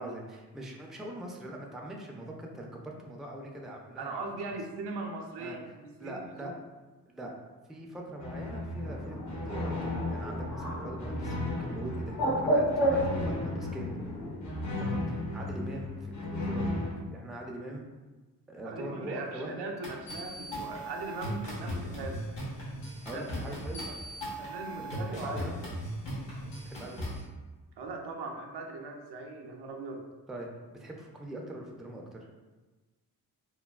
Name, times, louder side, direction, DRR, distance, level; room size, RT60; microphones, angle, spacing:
voice 1, 0.0-4.2 5.4-5.6 6.0-6.5 7.1-7.3 7.7-14.0 14.8-16.8 17.1-17.9 18.5-19.6 23.0-23.8 24.8-25.6 26.6-27.2 30.3-32.2, right 1 dB, ahead, 0 dB, 0.4 m, -42 dB
voice 2, 4.0-6.6 18.6-22.3 23.1-23.3 23.5-24.0 24.4-25.8 27.8-30.0, right 3 dB, 70° right, 3 dB, 0.5 m, -40 dB
sound 1, 8.2-16.9, left 2 dB, 45° left, 0.7 m, -35 dB
Bird, 8.8-14.3, right 1 dB, 60° left, 1.5 m, -32 dB
sound 2, 19.8-27.2, equal, 90° left, 0.9 m, -38 dB
3.1 x 2.2 x 2.2 m, 1.2 s
supercardioid pair, 45°, 42 cm